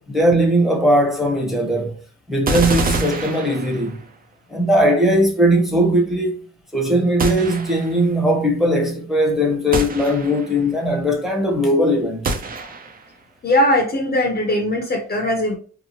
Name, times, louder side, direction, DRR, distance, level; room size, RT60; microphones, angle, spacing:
voice 1, 0.1-2.0 2.3-4.0 4.5-6.4 6.7-12.2, equal, ahead, 0.8 m, -19 dB
sound 1, 2.5-4.1 7.2-8.1 9.7-10.6 12.2-13.1, right 3 dB, 30° right, 0.5 m, -26 dB
voice 2, 13.4-15.6, left 1 dB, 35° left, 0.6 m, -19 dB
2.8 x 2.1 x 2.9 m
cardioid pair, 90°, 30 cm